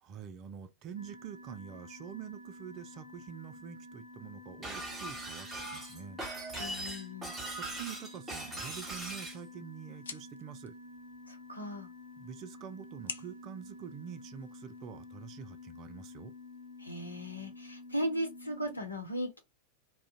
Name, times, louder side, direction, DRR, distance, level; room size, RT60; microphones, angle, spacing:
voice 1, 0.0-6.2 7.5-10.8 12.2-16.3, right 8 dB, 35° right, 0.4 m, -46 dB
sound 1, 1.0-18.8, left 2 dB, 90° right, 0.6 m, -50 dB
Shatter, 4.6-9.4, right 2 dB, 10° right, 1.2 m, -40 dB
voice 2, 6.6-7.3 11.3-11.9 16.8-19.4, equal, 85° left, 0.8 m, -37 dB
sound 2, 8.8-14.8, left 5 dB, 70° left, 0.4 m, -51 dB
2.4 x 2.1 x 3.7 m
figure-of-eight pair, 90°, 0 cm